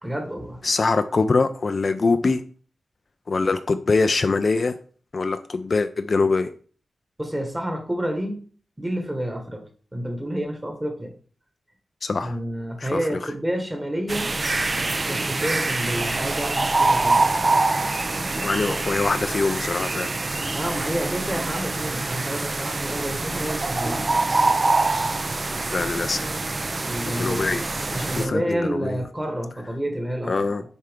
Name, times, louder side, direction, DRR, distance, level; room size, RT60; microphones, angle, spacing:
voice 1, 0.0-0.6 7.2-8.4 8.8-9.6 9.9-11.1 12.2-14.3 15.1-17.3 20.5-24.0 26.8-27.6 27.9-30.5, equal, 15° right, 3 dB, 1.5 m, -29 dB
voice 2, 0.6-2.4 3.3-4.8 5.1-6.5 12.0-12.4 12.8-13.0 18.4-20.1 20.4-20.5 25.7-26.4 27.1-27.6 28.2-29.0 30.3-30.6, left 3 dB, 45° left, 10 dB, 0.3 m, -23 dB
sound 1, 14.1-28.3, right 3 dB, 35° right, 0.4 m, -25 dB
6.7 x 4.5 x 3.5 m, 0.43 s
wide cardioid pair, 105°, 0 cm